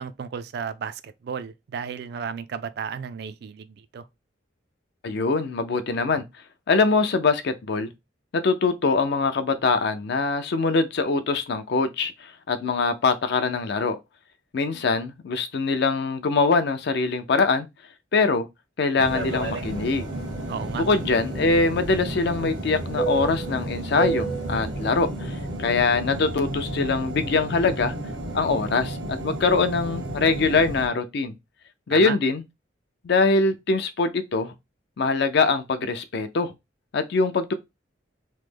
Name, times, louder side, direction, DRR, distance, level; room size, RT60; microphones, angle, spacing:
voice 1, 0.0-3.7 3.9-4.1 20.5-20.8 31.9-32.2, right 6 dB, 55° right, 0.3 m, -33 dB
voice 2, 5.0-6.2 6.7-7.9 8.3-14.0 14.5-17.7 18.1-18.5 18.8-20.1 20.7-27.9 28.3-29.0 29.2-31.3 31.9-32.4 33.0-34.5 35.0-36.5 36.9-37.5, left 4 dB, 60° left, 0.4 m, -23 dB
sound 1, 19.0-30.9, right 2 dB, 85° right, 1.1 m, -31 dB
3.1 x 2.0 x 3.3 m
head